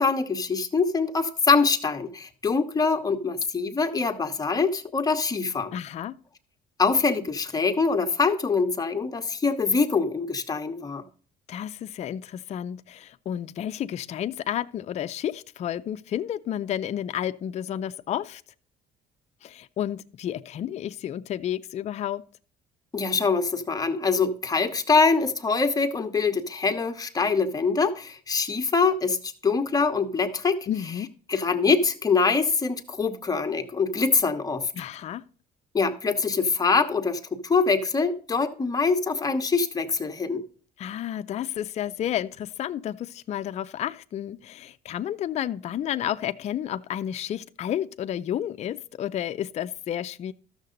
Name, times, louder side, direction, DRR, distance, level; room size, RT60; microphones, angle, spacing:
voice 1, 0.0-5.7 6.8-11.1 22.9-30.7 31.3-34.7 35.7-40.4, left 4 dB, 20° left, 1.0 m, -24 dB
voice 2, 5.7-6.2 11.5-18.4 19.4-22.2 30.7-31.1 34.7-35.2 40.8-50.3, left 10 dB, 40° left, 0.4 m, -31 dB
13.0 x 6.5 x 3.8 m
cardioid pair, 110°, 17 cm